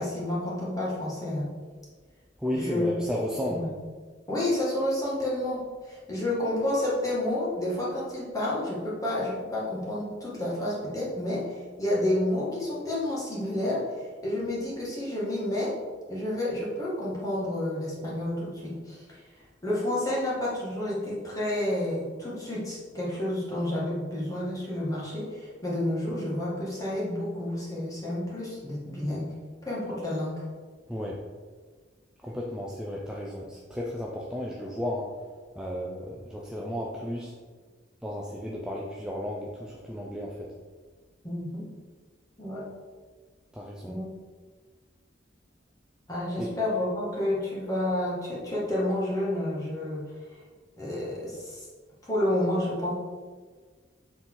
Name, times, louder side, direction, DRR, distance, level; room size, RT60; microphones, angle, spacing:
voice 1, 0.0-1.5 2.5-2.9 3.5-3.7 4.3-15.7 16.1-19.2 19.6-29.3 29.6-30.3 41.2-41.7 42.4-42.6 43.9-44.1 46.1-50.0 50.8-51.7 52.0-52.9, left 1 dB, 20° left, -6 dB, 1.7 m, -30 dB
voice 2, 2.4-3.7 30.9-31.2 32.2-35.2 35.6-37.3 38.0-40.5 43.5-44.0 46.4-46.5, equal, 5° right, -3 dB, 0.5 m, -33 dB
6.9 x 4.1 x 3.9 m, 1.5 s
head